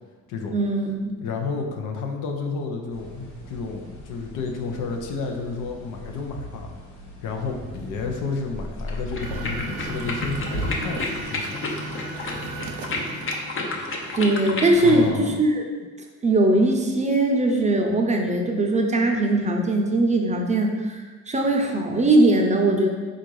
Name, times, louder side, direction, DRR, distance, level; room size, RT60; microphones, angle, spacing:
voice 1, 0.5-1.0 14.2-15.6 16.2-21.0 21.3-22.9, right 2 dB, 25° right, 2 dB, 0.6 m, -20 dB
voice 2, 1.2-3.1 3.5-6.7 7.2-11.7 14.8-15.4, left 4 dB, 90° left, 2 dB, 0.7 m, -31 dB
sound 1, 2.9-11.2, equal, 75° left, 1.2 m, -37 dB
sound 2, 8.8-15.0, left 2 dB, 45° left, 0.7 m, -31 dB
sound 3, 9.2-15.1, right 3 dB, 90° right, 0.6 m, -36 dB
4.0 x 2.5 x 4.7 m, 1.4 s
cardioid pair, 90°, 30 cm